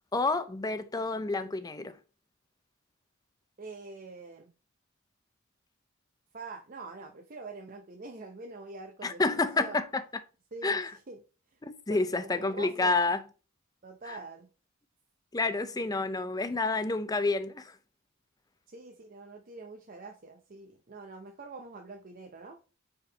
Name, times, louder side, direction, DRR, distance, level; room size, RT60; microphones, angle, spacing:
voice 1, 0.1-1.9 9.0-10.0 10.6-10.9 11.6-13.2 14.1-14.2 15.3-17.7, left 3 dB, 20° left, 0.5 m, -29 dB
voice 2, 3.6-4.5 6.3-9.8 10.5-11.2 11.5-11.6 11.9-13.2 13.8-14.5 18.7-22.6, right 3 dB, 40° right, 0.6 m, -45 dB
5.1 x 4.7 x 3.9 m
head